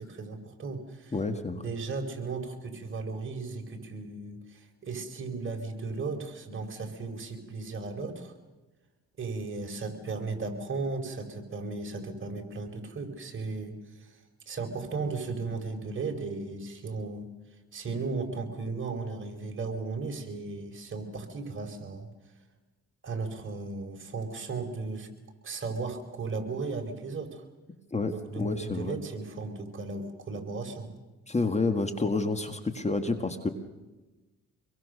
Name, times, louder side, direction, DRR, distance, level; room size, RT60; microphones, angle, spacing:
voice 1, 0.0-1.2 1.6-8.3 9.2-13.7 14.0-14.2 14.5-17.3 17.7-22.1 23.0-25.1 25.4-27.4 28.1-30.9, right 3 dB, 40° right, 3 dB, 4.5 m, -36 dB
voice 2, 1.1-1.7 27.9-29.0 31.3-33.5, left 3 dB, 20° left, 8 dB, 1.9 m, -29 dB
26.0 x 22.5 x 6.6 m, 1.1 s
cardioid pair, 90°, 30 cm